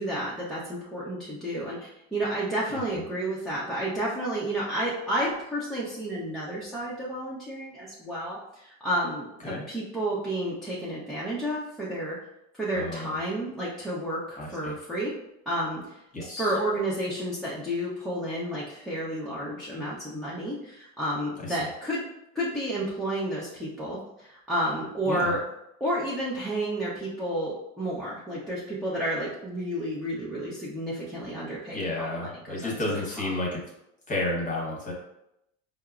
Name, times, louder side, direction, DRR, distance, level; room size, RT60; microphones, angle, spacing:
voice 1, 0.0-12.2 12.6-15.1 15.5-22.0 22.3-25.4 25.8-32.6 32.9-33.3, right 1 dB, ahead, -8 dB, 0.5 m, -31 dB
voice 2, 12.7-13.2 14.3-14.7 16.1-16.6 21.4-21.7 25.1-25.3 31.7-33.6 34.1-34.9, left 2 dB, 20° left, -2 dB, 1.0 m, -31 dB
4.4 x 2.0 x 2.4 m, 0.82 s
hypercardioid pair, 90°, 40 cm